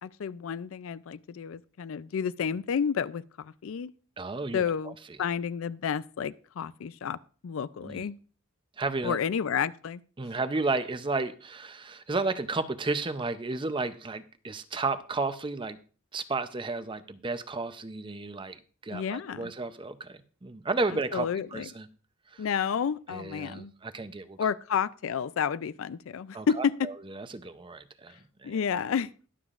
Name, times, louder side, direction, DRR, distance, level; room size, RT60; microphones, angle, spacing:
voice 1, 0.0-3.9 4.5-7.2 7.4-8.2 9.0-10.0 18.9-19.5 21.1-21.7 22.4-23.7 24.4-26.9 28.4-29.1, left 7 dB, 70° left, 0.4 m, -30 dB
voice 2, 4.2-4.9 7.8-8.0 8.8-9.2 10.2-15.8 16.1-21.9 22.3-22.4 23.1-24.4 26.3-28.6, right 3 dB, 25° right, 0.6 m, -33 dB
21.0 x 7.1 x 2.5 m
head